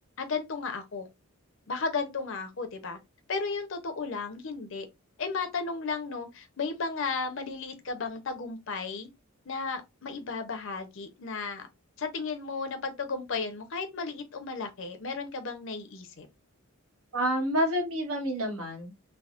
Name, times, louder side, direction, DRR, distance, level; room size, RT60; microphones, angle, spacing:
voice 1, 0.2-1.1 1.7-3.0 3.3-4.9 5.2-9.1 9.5-11.7 12.0-16.3, left 4 dB, 60° left, 0.6 m, -34 dB
voice 2, 17.1-19.0, equal, 75° right, 1.1 m, -28 dB
3.4 x 2.0 x 2.4 m
head